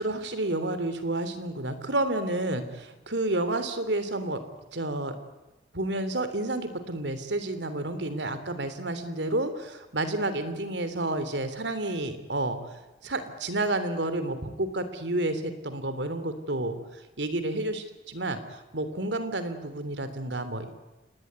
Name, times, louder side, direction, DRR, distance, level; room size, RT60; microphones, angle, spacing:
voice 1, 0.0-4.4 4.7-5.2 5.7-12.6 13.0-20.7, right 2 dB, 90° right, 11 dB, 3.3 m, -30 dB
28.0 x 19.5 x 9.4 m, 1.1 s
head